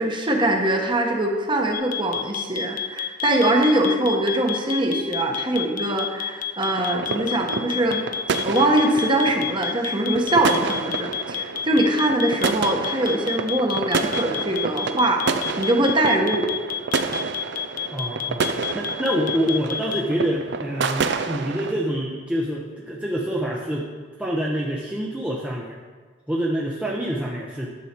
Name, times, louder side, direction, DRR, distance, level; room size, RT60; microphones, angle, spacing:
voice 1, 0.0-8.0 8.4-16.5, right 1 dB, 25° right, 2 dB, 1.1 m, -22 dB
sound 1, 1.7-20.0, left 9 dB, 45° left, 0.6 m, -29 dB
sound 2, 6.7-21.7, right 4 dB, 65° right, 0.5 m, -29 dB
voice 2, 17.9-18.5 18.7-23.9 24.2-25.8 26.3-27.7, equal, 5° right, -4 dB, 0.7 m, -26 dB
10.5 x 7.3 x 4.5 m, 1.4 s
head